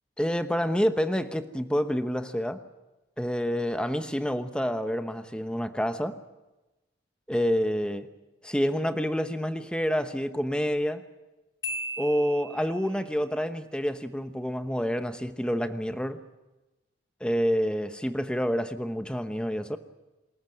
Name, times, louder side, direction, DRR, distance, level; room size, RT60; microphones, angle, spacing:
voice 1, 0.2-2.6 3.2-6.2 7.3-8.1 8.4-11.0 12.0-16.2 17.2-19.8, equal, 5° left, 9 dB, 0.9 m, -28 dB
Marimba xylophone, 11.6-13.1, equal, 70° left, 2.6 m, -36 dB
27.0 x 14.0 x 9.0 m, 1.1 s
head